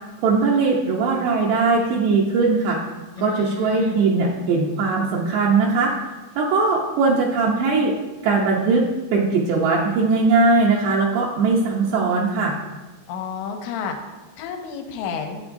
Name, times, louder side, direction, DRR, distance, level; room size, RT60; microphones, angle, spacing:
voice 1, 0.2-2.8 3.2-5.9 6.4-7.9 8.2-12.6, right 4 dB, 75° right, -3 dB, 2.7 m, -20 dB
voice 2, 3.2-4.0 13.1-14.0 14.4-15.4, left 6 dB, 85° left, 4 dB, 3.0 m, -30 dB
10.5 x 8.3 x 2.6 m, 1.2 s
omnidirectional pair, 5.2 m